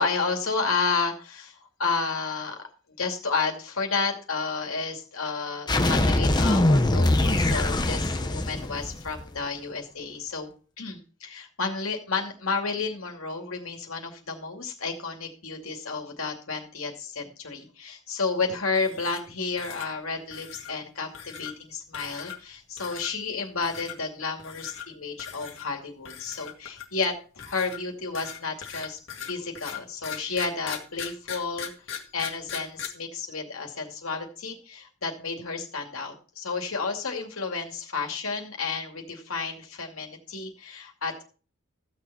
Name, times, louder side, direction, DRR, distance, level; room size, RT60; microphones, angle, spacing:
voice 1, 0.0-2.7 3.0-10.5 10.8-29.0 29.3-31.7 32.1-41.2, left 4 dB, 80° left, 3 dB, 2.4 m, -31 dB
sound 1, 5.7-9.4, left 1 dB, 20° left, 0.8 m, -23 dB
sound 2, 18.7-19.3 19.6-19.9 20.3-20.7 21.1-21.5 21.9-22.5 22.8-23.1 23.6-23.9 24.4-24.9 25.2-25.7 26.0-27.0 27.4-32.9, left 9 dB, 60° left, 2.1 m, -39 dB
15.0 x 6.8 x 4.2 m, 0.38 s
head